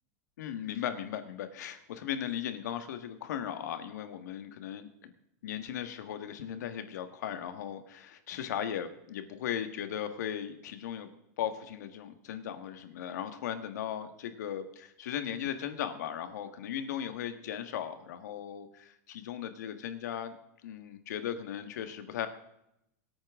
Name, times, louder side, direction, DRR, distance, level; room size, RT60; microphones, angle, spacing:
voice 1, 0.4-5.1 5.4-11.1 11.4-20.4 20.6-22.3, left 9 dB, 75° left, 9 dB, 1.7 m, -37 dB
24.0 x 8.9 x 3.7 m, 0.80 s
supercardioid pair, 170°, 9 cm